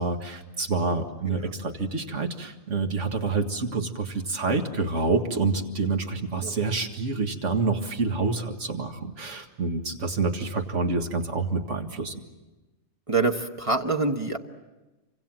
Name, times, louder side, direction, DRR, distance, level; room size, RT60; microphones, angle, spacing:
voice 1, 0.0-12.2, right 4 dB, 65° right, 5 dB, 2.2 m, -27 dB
voice 2, 13.1-14.4, right 3 dB, 25° right, 3 dB, 1.3 m, -26 dB
28.5 x 25.0 x 7.5 m, 1.1 s
omnidirectional pair, 1.3 m